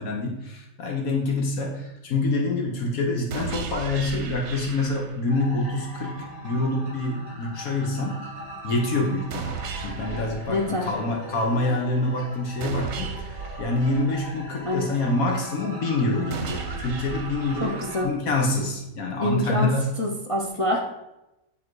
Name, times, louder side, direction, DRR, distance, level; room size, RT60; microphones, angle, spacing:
voice 1, 0.0-6.2 6.4-8.2 8.6-19.8, left 2 dB, 75° left, 0 dB, 1.6 m, -26 dB
sound 1, 3.3-5.3 9.3-11.3 12.6-14.6 16.3-18.3, right 5 dB, 60° right, 1.0 m, -36 dB
sound 2, 5.3-18.0, right 1 dB, 45° left, 3.2 m, -40 dB
voice 2, 10.5-10.9 14.6-14.9 17.6-18.1 19.2-19.7 20.0-20.9, left 1 dB, 30° left, -1 dB, 0.8 m, -26 dB
10.0 x 3.8 x 4.7 m, 0.93 s
omnidirectional pair, 1.5 m